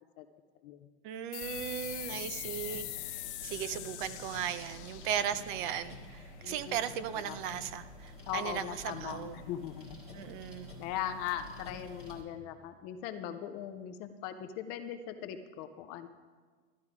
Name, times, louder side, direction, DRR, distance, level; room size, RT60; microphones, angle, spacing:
voice 1, 1.0-2.9 3.2-9.4 10.1-10.7, right 9 dB, 45° right, 13 dB, 0.6 m, -37 dB
sound 1, 1.3-6.5, left 15 dB, 80° left, 0.8 m, -43 dB
sound 2, 1.4-12.2, left 1 dB, 15° right, 1.8 m, -49 dB
voice 2, 6.4-6.8 7.3-7.4 8.3-10.0 10.2-10.3 10.8-16.1, left 10 dB, 30° left, 8 dB, 0.4 m, -39 dB
12.5 x 11.0 x 4.8 m, 1.5 s
supercardioid pair, 165°, 34 cm